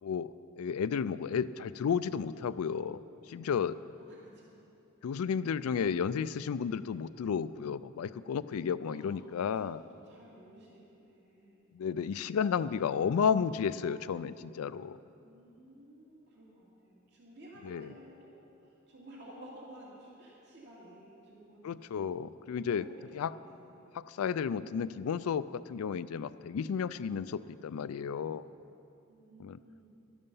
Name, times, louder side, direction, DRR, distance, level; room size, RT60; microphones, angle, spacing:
voice 1, 0.0-3.0 3.3-3.8 5.0-9.8 11.7-15.0 17.7-17.9 21.6-22.8 23.2-23.3 24.1-28.4 29.4-29.6, left 7 dB, 85° left, 15 dB, 0.4 m, -32 dB
voice 2, 4.0-4.6 8.8-11.7 15.2-18.3 18.6-22.0 22.7-23.8 29.1-30.0, right 1 dB, 55° right, -5 dB, 2.5 m, -54 dB
12.0 x 12.0 x 5.5 m, 2.8 s
head